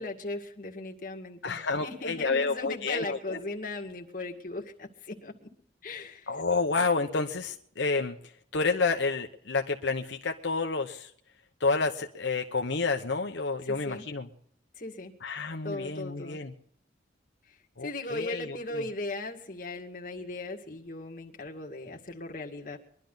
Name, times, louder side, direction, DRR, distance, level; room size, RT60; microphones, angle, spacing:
voice 1, 0.0-5.5 5.8-6.3 13.6-14.1 14.8-15.1 15.6-16.4 17.8-22.9, left 2 dB, 45° left, 2 dB, 2.1 m, -38 dB
voice 2, 1.4-3.4 6.3-8.2 8.5-11.1 11.6-14.3 15.2-16.5 17.8-18.8, left 4 dB, 80° left, 3 dB, 1.0 m, -29 dB
22.5 x 12.0 x 4.0 m, 0.65 s
head